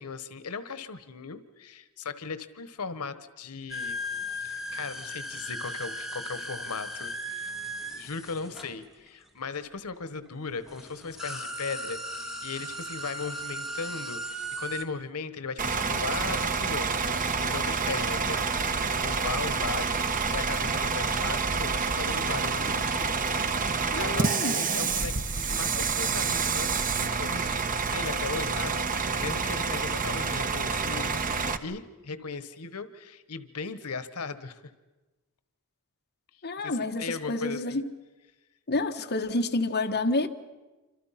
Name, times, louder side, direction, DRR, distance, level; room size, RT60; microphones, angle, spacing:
voice 1, 0.0-4.0 4.4-7.5 7.8-18.7 19.0-27.6 27.9-34.7 36.6-37.8, left 4 dB, 85° left, 1.2 m, -38 dB
sound 1, 3.7-9.4 10.3-10.4 10.7-14.8, equal, ahead, 2.2 m, -37 dB
Bus / Idling, 15.6-31.6, right 5 dB, 40° right, 1.1 m, -28 dB
voice 2, 23.9-24.6 36.4-37.8 38.7-40.3, left 2 dB, 45° left, 1.5 m, -29 dB
sound 2, 24.7-30.1, left 1 dB, 20° left, 8.0 m, -54 dB
28.5 x 26.0 x 5.8 m
head